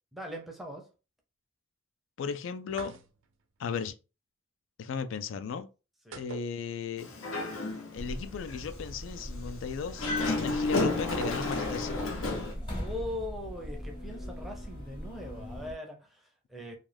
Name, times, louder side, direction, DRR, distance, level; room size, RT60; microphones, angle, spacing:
voice 1, 0.1-0.9 6.1-6.2 12.8-16.8, left 1 dB, ahead, 0.5 m, -40 dB
voice 2, 2.2-3.0 3.6-3.9 4.8-5.7 6.2-7.1 7.9-12.1, left 6 dB, 70° left, 0.3 m, -36 dB
sound 1, 2.7-3.4 6.1-7.2 7.4-7.5 11.1-11.9, right 4 dB, 75° right, 0.4 m, -44 dB
Dog, 7.0-8.1 8.5-8.6 9.9-12.5, left 2 dB, 90° left, 0.7 m, -31 dB
sound 2, 7.9-15.7, equal, 25° left, 0.8 m, -41 dB
2.3 x 2.2 x 3.2 m
head